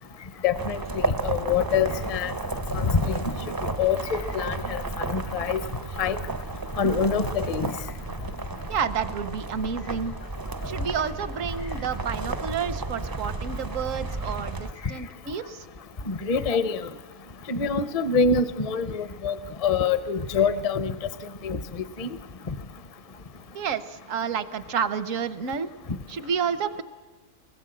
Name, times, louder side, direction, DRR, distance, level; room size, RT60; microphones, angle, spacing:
voice 1, 0.4-2.3 2.7-3.2 3.6-4.8 5.1-5.6 6.0-6.2 6.8-7.7 16.1-16.8 17.5-21.0 21.4-22.1 22.5-22.6, left 5 dB, 35° left, 12 dB, 0.6 m, -25 dB
sound 1, 0.5-14.7, right 3 dB, 30° right, 0.4 m, -32 dB
voice 2, 8.7-10.1 10.6-15.7 23.5-25.7 26.1-26.8, right 7 dB, 75° right, 13 dB, 1.3 m, -30 dB
25.0 x 20.0 x 7.7 m, 1.4 s
omnidirectional pair, 1.4 m